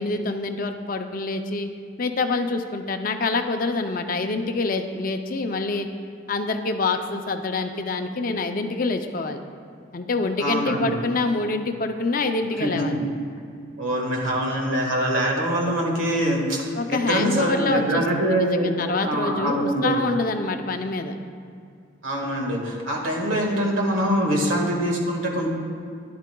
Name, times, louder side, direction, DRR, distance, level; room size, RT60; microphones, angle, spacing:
voice 1, 0.0-1.7 2.0-5.9 6.3-9.4 9.9-13.0 16.8-21.2, left 3 dB, 45° left, 6 dB, 0.5 m, -26 dB
voice 2, 10.4-11.0 12.6-13.0 13.8-18.8 19.0-20.0 22.0-25.5, right 1 dB, 80° right, -1 dB, 1.7 m, -24 dB
12.0 x 11.0 x 2.3 m, 2.3 s
head